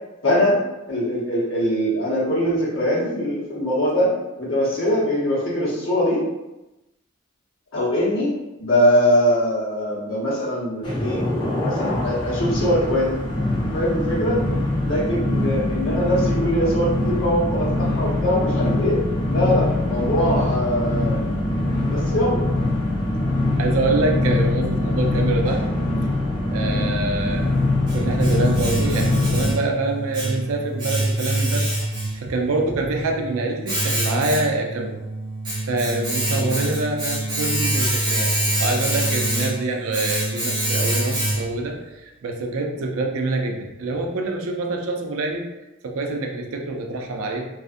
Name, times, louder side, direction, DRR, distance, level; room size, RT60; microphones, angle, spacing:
voice 1, 0.2-0.6 0.9-4.1 4.4-6.2 7.7-11.2 11.6-13.2 13.6-14.4 14.8-19.0 19.3-21.2 21.8-22.4 36.4-36.5, equal, 70° left, -6 dB, 1.0 m, -22 dB
sound 1, 10.8-29.6, left 1 dB, 25° left, 0.5 m, -23 dB
voice 2, 23.6-25.6 26.5-27.5 27.9-31.7 32.1-35.0 35.6-38.3 38.6-45.5 45.8-47.5, right 2 dB, 85° right, 2 dB, 0.4 m, -25 dB
Domestic sounds home sounds, 27.3-41.7, right 1 dB, 20° right, 0.7 m, -25 dB
2.4 x 2.4 x 2.5 m, 1.0 s
head